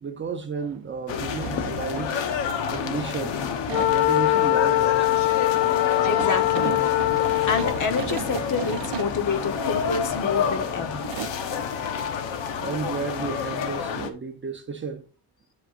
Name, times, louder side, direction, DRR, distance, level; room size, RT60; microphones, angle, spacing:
voice 1, 0.0-2.2 2.7-3.4 3.9-5.3 11.6-11.7 12.6-15.1, right 5 dB, 25° right, 0.6 m, -32 dB
sound 1, 0.6-0.8 1.1-2.8 3.2-9.2 9.8-9.9 10.6-10.8 11.0-11.4 13.1-13.2 13.5-13.6, right 15 dB, 85° right, 0.6 m, -37 dB
sound 2, 1.1-14.1, left 7 dB, 85° left, 1.1 m, -29 dB
Wind instrument woodwind instrument, 3.7-7.9, left 19 dB, 65° left, 0.6 m, -22 dB
voice 2, 6.0-6.8 7.5-11.1, left 5 dB, 45° left, 1.1 m, -28 dB
8.2 x 7.7 x 2.5 m
cardioid pair, 160°, 44 cm